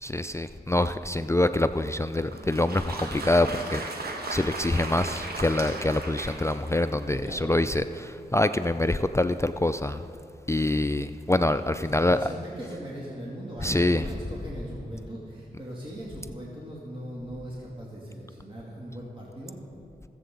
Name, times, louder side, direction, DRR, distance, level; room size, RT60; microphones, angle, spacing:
voice 1, 0.0-3.8 4.3-10.0 10.5-12.2 13.6-14.0, left 2 dB, 15° left, 10 dB, 0.4 m, -25 dB
Applause, 2.3-7.1, right 2 dB, 60° right, 1.6 m, -36 dB
voice 2, 7.2-7.6 11.8-19.6, equal, 30° right, -5 dB, 2.6 m, -40 dB
21.0 x 7.8 x 3.9 m, 2.5 s
cardioid pair, 40°, 18 cm